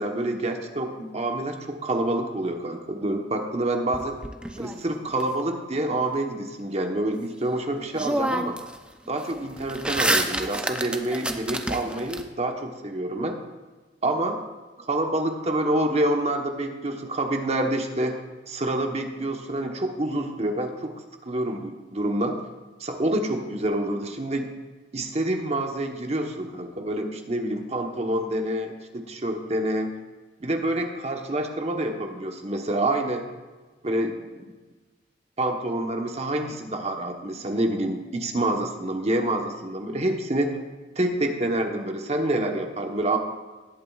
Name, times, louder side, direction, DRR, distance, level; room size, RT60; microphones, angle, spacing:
voice 1, 0.0-4.2 4.6-8.6 9.1-13.4 14.0-14.4 14.8-18.1 18.5-20.9 21.2-22.4 22.8-24.5 24.9-30.0 30.4-33.2 33.8-34.5 35.4-40.6 41.0-43.2, right 1 dB, 35° right, 4 dB, 1.0 m, -27 dB
sound 1, 3.9-5.2 7.4-7.5 7.9-8.8 9.1-12.2, right 1 dB, 5° right, 0.5 m, -28 dB
18.0 x 8.8 x 2.4 m, 1.3 s
head